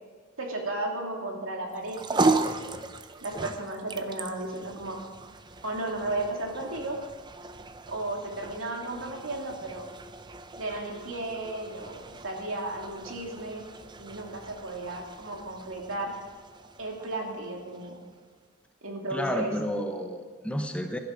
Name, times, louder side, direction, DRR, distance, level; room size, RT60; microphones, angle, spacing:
voice 1, 0.4-2.5 3.2-5.0 5.6-7.0 7.9-9.9 10.6-13.6 14.0-16.1 16.8-18.0 18.8-19.5, right 2 dB, 80° right, 1 dB, 2.6 m, -34 dB
sound 1, 1.7-18.2, right 3 dB, 20° right, 0.6 m, -36 dB
voice 2, 19.1-21.0, equal, 5° left, 5 dB, 0.9 m, -31 dB
17.0 x 11.5 x 5.2 m, 1.5 s
head